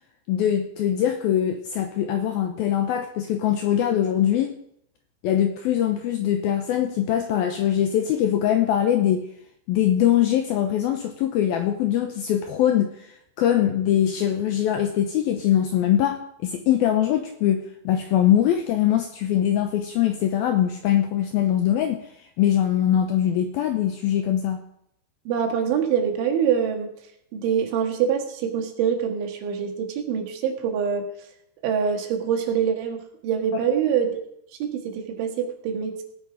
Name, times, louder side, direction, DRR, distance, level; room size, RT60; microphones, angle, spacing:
voice 1, 0.3-4.5 5.2-9.3 9.7-12.9 13.4-22.0 22.4-24.6, left 10 dB, 80° left, 6 dB, 2.2 m, -22 dB
voice 2, 25.3-26.9 27.3-31.1 31.6-34.2 34.6-36.0, right 7 dB, 85° right, 4 dB, 4.2 m, -25 dB
17.5 x 9.6 x 4.9 m, 0.73 s
omnidirectional pair, 5.3 m